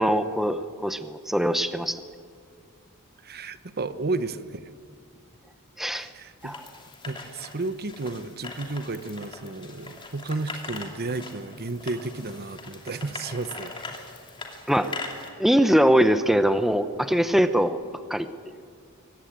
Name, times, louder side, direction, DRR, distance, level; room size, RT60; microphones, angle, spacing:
voice 1, 0.0-2.0 5.8-6.1 6.4-6.6 14.7-14.9 15.4-17.8 18.1-18.3, equal, ahead, 10 dB, 0.7 m, -22 dB
voice 2, 3.2-4.7 5.9-6.6 7.0-13.7, right 3 dB, 45° right, 13 dB, 0.9 m, -32 dB
sound 1, 6.4-15.3, left 3 dB, 25° left, 2.8 m, -41 dB
23.0 x 18.0 x 8.8 m, 2.2 s
head